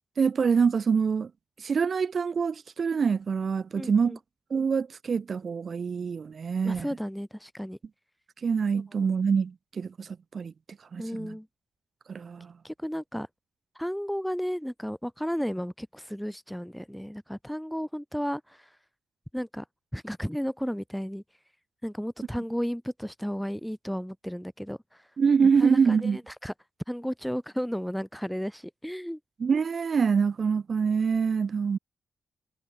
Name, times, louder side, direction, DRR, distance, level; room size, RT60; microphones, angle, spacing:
voice 1, 0.2-1.3 1.6-4.2 4.5-6.9 8.4-10.5 10.9-11.4 12.1-12.5 25.2-26.2 29.4-31.8, right 6 dB, 55° right, 3.3 m, -25 dB
voice 2, 3.7-4.2 6.6-7.8 11.0-11.5 12.6-13.3 13.8-18.6 19.3-19.6 19.9-21.2 21.8-24.8 25.4-26.5 26.9-29.2, equal, ahead, 5.2 m, -33 dB
cardioid pair, 70°, 0 cm